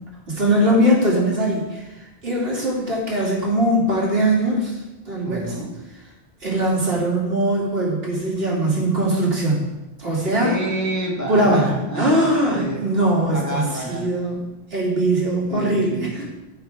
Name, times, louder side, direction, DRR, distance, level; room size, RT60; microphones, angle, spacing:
voice 1, 0.3-4.7 5.0-5.6 6.4-9.7 10.0-10.5 11.3-13.6 13.9-14.4 14.7-16.1, right 1 dB, 70° right, -4 dB, 2.9 m, -21 dB
voice 2, 5.2-5.7 10.4-12.9 13.3-14.2 15.5-16.3, right 1 dB, 15° left, -2 dB, 1.3 m, -29 dB
15.0 x 6.4 x 3.5 m, 1.0 s
omnidirectional pair, 1.1 m